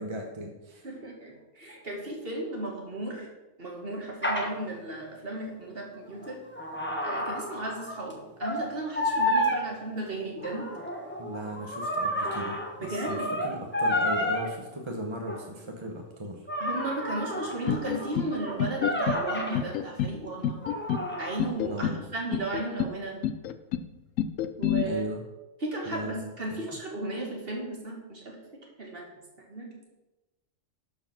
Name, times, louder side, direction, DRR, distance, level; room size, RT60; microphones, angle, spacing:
voice 1, 0.0-0.9 11.2-16.5 21.7-22.0 24.8-25.2 25.9-26.3, right 1 dB, 25° right, 1 dB, 1.0 m, -37 dB
voice 2, 0.8-3.3 3.6-6.4 7.0-10.7 12.8-13.3 16.6-20.6 21.2-23.2 24.6-25.1 25.6-28.4 28.8-29.1 29.5-30.0, right 2 dB, 45° right, -1 dB, 2.4 m, -35 dB
sound 1, 4.2-4.5 6.1-8.1 8.4-8.7 8.9-9.6 10.4-14.5 15.3-15.4 16.5-19.6 20.6-21.5, left 1 dB, 10° left, 1.2 m, -30 dB
sound 2, 17.7-18.3 18.6-19.2 19.5-20.2 20.4-21.1 21.4-22.0 22.3-22.9 23.2-23.9 24.2-24.8, left 9 dB, 85° left, 1.0 m, -28 dB
12.0 x 4.8 x 6.0 m, 1.1 s
omnidirectional pair, 1.3 m